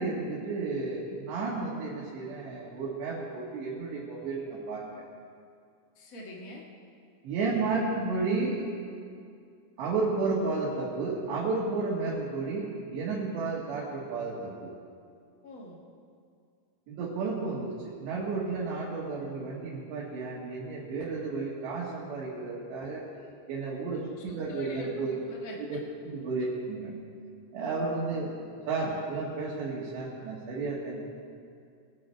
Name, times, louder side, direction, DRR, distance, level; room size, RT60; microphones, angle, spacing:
voice 1, 0.0-4.8 7.2-8.6 9.8-14.7 16.9-23.0 23.5-25.2 25.6-25.8 26.2-26.9 27.5-31.0, right 3 dB, 85° right, -7 dB, 4.3 m, -32 dB
voice 2, 5.9-6.7 15.4-15.8 24.3-25.8 26.4-26.5, left 2 dB, 50° left, -2 dB, 0.9 m, -43 dB
23.0 x 10.0 x 4.6 m, 2.3 s
omnidirectional pair, 4.9 m